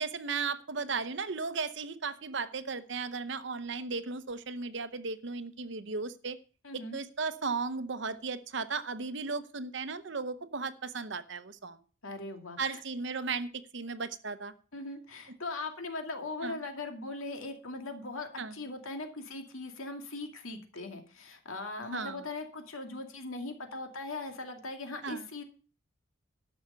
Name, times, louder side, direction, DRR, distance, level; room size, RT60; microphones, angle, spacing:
voice 1, 0.0-6.4 6.7-11.8 12.6-14.5 16.4-16.6 18.4-18.5 21.9-22.2 25.0-25.3, right 4 dB, 55° right, 13 dB, 0.8 m, -35 dB
voice 2, 6.6-7.0 12.0-12.8 14.7-25.4, left 2 dB, 80° left, 5 dB, 2.3 m, -40 dB
12.5 x 6.4 x 6.7 m, 0.38 s
head